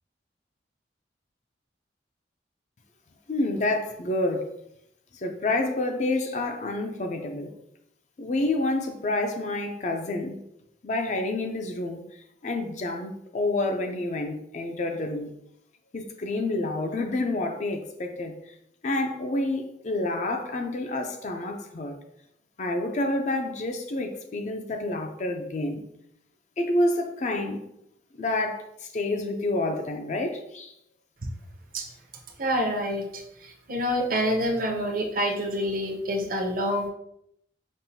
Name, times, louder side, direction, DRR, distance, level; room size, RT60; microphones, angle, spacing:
voice 1, 3.3-4.5 5.1-7.5 8.2-10.4 10.8-15.3 15.9-18.5 18.8-21.9 22.6-25.8 26.6-27.7 28.2-30.7, left 2 dB, 40° left, 4 dB, 0.4 m, -28 dB
voice 2, 32.4-36.9, equal, 50° right, 2 dB, 0.6 m, -27 dB
5.3 x 2.4 x 2.7 m, 0.76 s
head